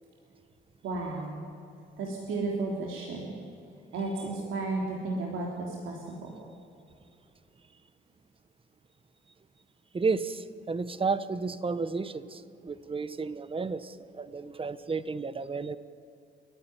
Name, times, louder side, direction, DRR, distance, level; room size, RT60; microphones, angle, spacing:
voice 1, 0.8-1.5 2.0-3.3 3.9-6.3, right 3 dB, 80° right, -1 dB, 3.5 m, -33 dB
voice 2, 9.9-15.8, right 4 dB, 25° right, 14 dB, 1.1 m, -32 dB
30.0 x 11.5 x 10.0 m, 2.6 s
cardioid pair, 90°, 20 cm